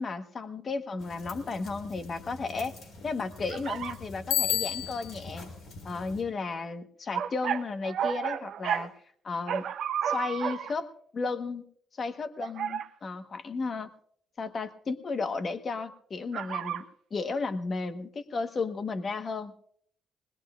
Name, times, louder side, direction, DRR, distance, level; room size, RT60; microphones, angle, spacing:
voice 1, 0.0-2.7 3.0-5.5 5.8-8.9 9.2-9.7 10.0-11.6 11.9-13.9 14.4-16.8 17.1-19.5, left 4 dB, 45° left, 8 dB, 1.3 m, -34 dB
sound 1, 1.0-6.2, left 2 dB, 70° left, 6.1 m, -46 dB
sound 2, 3.5-4.0 7.1-8.9 9.5-10.8 12.4-12.9 16.3-16.8, right 9 dB, 70° right, 0.9 m, -32 dB
Bicycle bell, 4.3-5.3, left 12 dB, 85° left, 0.6 m, -29 dB
21.0 x 20.0 x 2.5 m, 0.63 s
cardioid pair, 90°, 0 cm